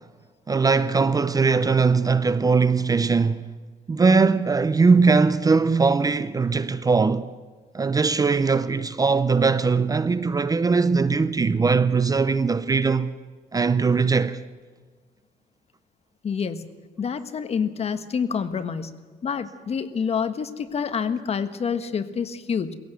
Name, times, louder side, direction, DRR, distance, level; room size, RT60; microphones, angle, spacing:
voice 1, 0.5-3.5 3.9-7.3 7.7-13.1 13.5-14.4, right 4 dB, 20° right, 0.6 m, -20 dB
voice 2, 16.2-16.7 17.0-18.9 19.2-22.8, left 6 dB, 35° left, 1.3 m, -27 dB
21.5 x 17.0 x 8.1 m
cardioid pair, 110°, 17 cm